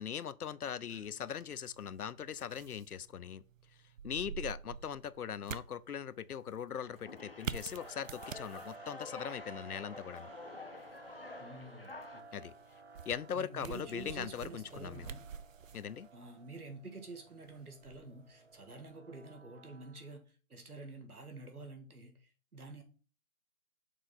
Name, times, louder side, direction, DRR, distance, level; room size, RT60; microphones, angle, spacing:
voice 1, 0.0-3.4 4.0-10.3 12.3-12.5 13.1-15.1 15.7-16.1, left 8 dB, 90° left, 0.6 m, -40 dB
Take a card and put away, 0.9-19.0, right 7 dB, 65° right, 0.5 m, -49 dB
sound 1, 6.7-12.2, left 3 dB, 45° left, 0.4 m, -50 dB
sound 2, 7.8-20.1, right 3 dB, 45° right, 1.1 m, -55 dB
voice 2, 11.4-12.5 13.3-15.3 16.1-22.8, right 3 dB, 90° right, 1.9 m, -49 dB
6.5 x 3.8 x 4.0 m
figure-of-eight pair, 165°, 43 cm